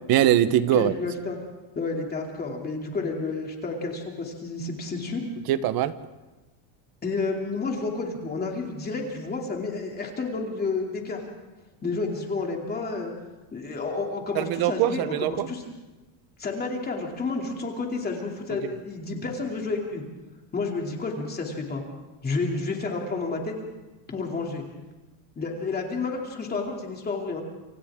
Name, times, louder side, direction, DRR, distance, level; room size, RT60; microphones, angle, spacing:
voice 1, 0.1-0.9 5.5-5.9 14.3-15.5, right 12 dB, 50° right, 13 dB, 1.1 m, -22 dB
voice 2, 0.7-1.4 1.7-5.3 7.0-11.2 11.8-13.1 13.5-15.6 16.4-20.0 20.5-21.8 22.2-23.5 24.1-24.6 25.4-27.4, left 3 dB, 20° left, 0 dB, 2.9 m, -30 dB
28.5 x 26.5 x 3.7 m, 1.1 s
cardioid pair, 170°, 47 cm